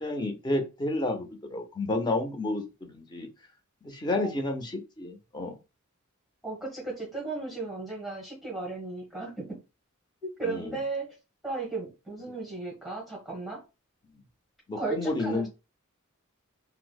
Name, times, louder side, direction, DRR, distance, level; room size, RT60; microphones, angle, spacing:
voice 1, 0.0-3.3 3.8-5.5 10.5-10.8 14.7-15.5, left 2 dB, 20° left, 4 dB, 0.5 m, -30 dB
voice 2, 6.4-9.6 10.2-11.1 11.4-13.6 14.7-15.5, right 3 dB, ahead, -3 dB, 1.0 m, -35 dB
4.4 x 2.0 x 2.2 m, 0.28 s
head